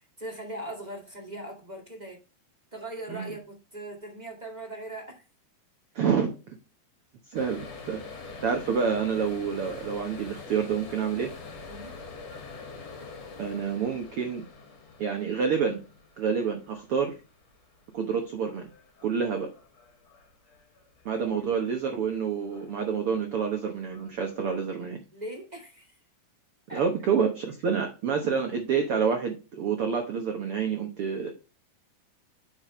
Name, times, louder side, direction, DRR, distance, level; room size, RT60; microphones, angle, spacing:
voice 1, 0.2-2.2 2.7-5.2 11.7-12.0 21.1-21.5 25.1-25.9 26.7-26.8, right 1 dB, 20° right, 1 dB, 1.1 m, -40 dB
voice 2, 5.9-6.6 7.3-8.0 8.4-11.3 13.4-14.4 15.0-15.8 16.2-17.1 17.9-18.7 19.0-19.5 21.0-25.0 26.7-31.3, right 6 dB, 80° right, 4 dB, 1.2 m, -28 dB
sound 1, 7.3-22.1 22.5-22.9 23.3-24.6, left 4 dB, 50° left, 2.9 m, -45 dB
8.8 x 6.2 x 3.1 m, 0.32 s
omnidirectional pair, 4.3 m